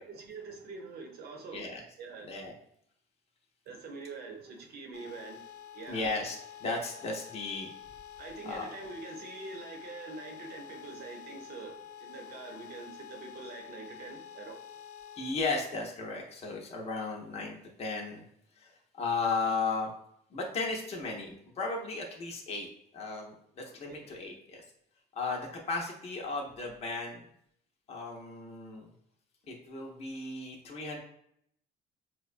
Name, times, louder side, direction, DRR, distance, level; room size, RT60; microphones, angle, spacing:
voice 1, 0.1-1.7 2.0-2.3 3.7-5.5 5.7-6.1 8.2-14.6 23.6-24.1, right 4 dB, 65° right, 2 dB, 0.8 m, -45 dB
sound 1, 4.9-15.3, left 9 dB, 75° left, 0.5 m, -48 dB
voice 2, 5.9-7.7 8.4-8.6 15.2-18.2 18.6-19.9 20.3-22.7 22.9-24.6 25.1-27.2 27.9-28.9 29.5-31.0, left 3 dB, 40° left, 0 dB, 0.7 m, -35 dB
4.4 x 2.1 x 2.5 m, 0.70 s
cardioid pair, 110°, 17 cm